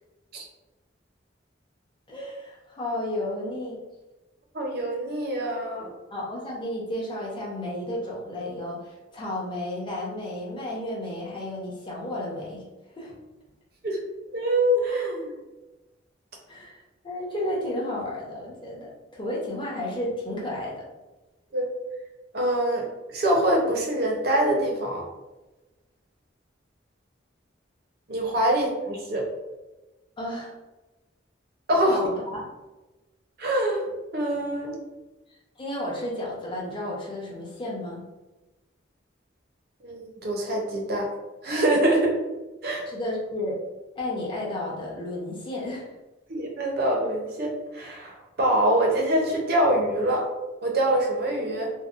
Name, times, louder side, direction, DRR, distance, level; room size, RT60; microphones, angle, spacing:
voice 1, 2.1-3.8 6.1-12.6 13.0-13.2 16.5-20.8 30.2-30.5 31.9-32.4 35.6-38.0 42.9-43.5 44.0-45.9, left 1 dB, 25° left, -4 dB, 0.6 m, -32 dB
voice 2, 4.5-5.9 13.8-14.0 14.3-15.3 21.5-21.7 22.3-25.0 28.1-29.3 31.7-32.0 33.4-33.8 34.1-34.8 39.8-41.1 41.4-42.1 42.6-42.8 46.3-50.3 50.6-51.7, right 1 dB, 55° right, 0 dB, 0.5 m, -24 dB
2.7 x 2.0 x 2.3 m, 1.1 s
head